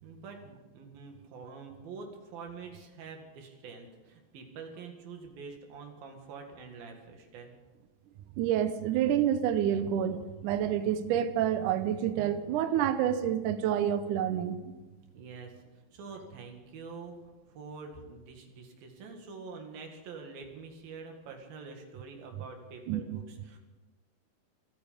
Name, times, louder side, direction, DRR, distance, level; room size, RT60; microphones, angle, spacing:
voice 1, 0.0-7.5 15.1-17.2 17.5-23.6, right 4 dB, 90° right, 3 dB, 3.9 m, -46 dB
voice 2, 8.4-14.6 22.9-23.2, right 10 dB, 75° right, 10 dB, 2.2 m, -28 dB
27.0 x 9.2 x 5.3 m, 1.2 s
omnidirectional pair, 4.0 m